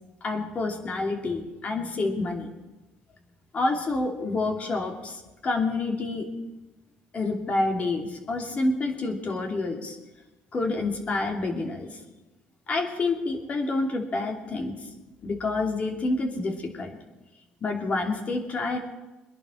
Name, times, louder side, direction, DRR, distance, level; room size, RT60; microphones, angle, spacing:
voice 1, 0.2-2.5 3.5-6.3 7.1-10.0 10.5-12.0 12.7-14.9 15.2-17.0 17.6-18.8, left 3 dB, 35° left, 3 dB, 2.7 m, -28 dB
22.0 x 11.0 x 4.5 m, 1.1 s
cardioid pair, 105°, 4 cm